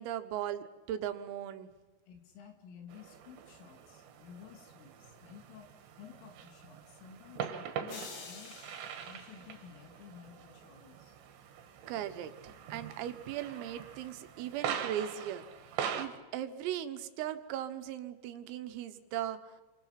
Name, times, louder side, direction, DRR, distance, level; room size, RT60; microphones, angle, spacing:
voice 1, 0.0-1.7 11.9-19.6, right 11 dB, 85° right, 9 dB, 3.9 m, -38 dB
voice 2, 2.1-5.7 6.0-8.6 9.0-11.2, left 8 dB, 75° left, 4 dB, 4.9 m, -53 dB
sound 1, 2.9-16.1, right 8 dB, 65° right, 3.5 m, -43 dB
sound 2, 7.9-10.2, left 4 dB, 55° left, 4.6 m, -49 dB
28.5 x 26.0 x 5.9 m, 1.2 s
omnidirectional pair, 5.9 m